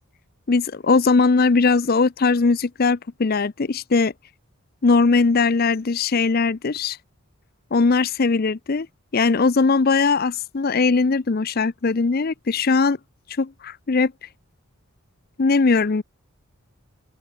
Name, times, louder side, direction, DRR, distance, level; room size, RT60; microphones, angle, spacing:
voice 1, 0.5-4.1 4.8-7.0 7.7-8.9 9.1-13.0 13.4-14.3 15.4-16.0, left 4 dB, 40° left, 0.5 m, -20 dB
open air
head